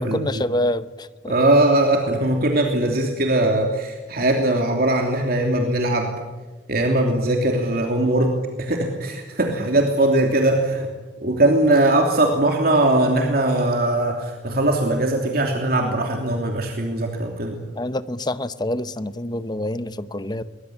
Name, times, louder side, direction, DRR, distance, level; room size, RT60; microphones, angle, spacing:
voice 1, 0.1-1.3 17.8-20.4, left 1 dB, 25° left, 13 dB, 0.9 m, -26 dB
voice 2, 1.3-6.1 6.7-8.3 8.6-10.9 11.2-17.6, right 1 dB, 55° right, 2 dB, 3.1 m, -20 dB
23.0 x 21.0 x 10.0 m, 1.3 s
head